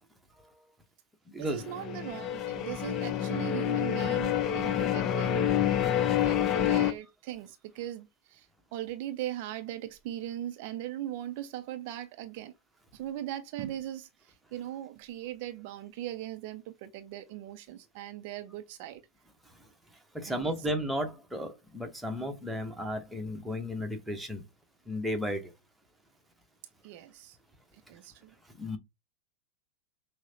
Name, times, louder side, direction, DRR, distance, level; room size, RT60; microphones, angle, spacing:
voice 1, 1.4-12.5 12.9-19.0 20.3-20.7 26.8-27.4 27.7-28.3, right 12 dB, 45° right, 0.4 m, -40 dB
sound 1, 1.6-6.9, left 10 dB, 30° left, 0.6 m, -28 dB
voice 2, 20.1-24.5 24.9-25.5 28.5-28.8, equal, 5° right, 0.9 m, -34 dB
6.0 x 2.0 x 2.8 m
figure-of-eight pair, 90°, 0 cm